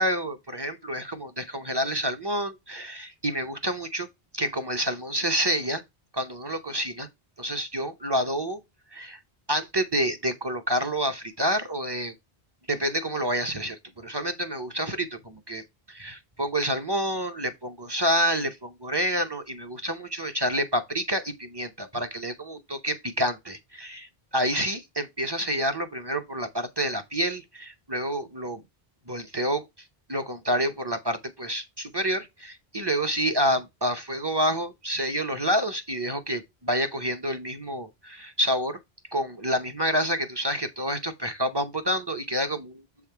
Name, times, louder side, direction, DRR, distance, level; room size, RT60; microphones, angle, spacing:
voice 1, 0.0-4.1 4.3-5.8 6.1-7.1 7.4-8.6 8.9-9.2 9.5-12.1 12.7-28.6 29.1-29.6 30.1-38.8 39.1-42.8, equal, 25° right, 0.7 m, -28 dB
7.4 x 3.6 x 4.5 m
omnidirectional pair, 1.0 m